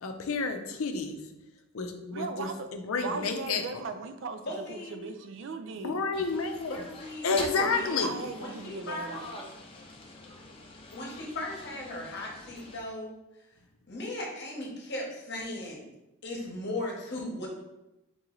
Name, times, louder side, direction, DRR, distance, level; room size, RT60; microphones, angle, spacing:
voice 1, 0.0-1.2 1.7-2.5 2.8-3.6 5.8-6.8 7.2-8.1, left 4 dB, 85° left, 5 dB, 0.5 m, -30 dB
voice 2, 2.1-2.7 3.0-6.1 7.3-9.5, right 4 dB, 60° right, 8 dB, 0.4 m, -38 dB
voice 3, 4.4-5.0 6.7-7.4 7.6-8.1 8.4-9.1 10.9-13.1 13.9-15.8 16.2-17.5, left 1 dB, 50° left, -1 dB, 0.9 m, -37 dB
sound 1, 6.1-12.8, left 2 dB, 25° left, 0.4 m, -46 dB
3.8 x 3.1 x 3.7 m, 0.92 s
head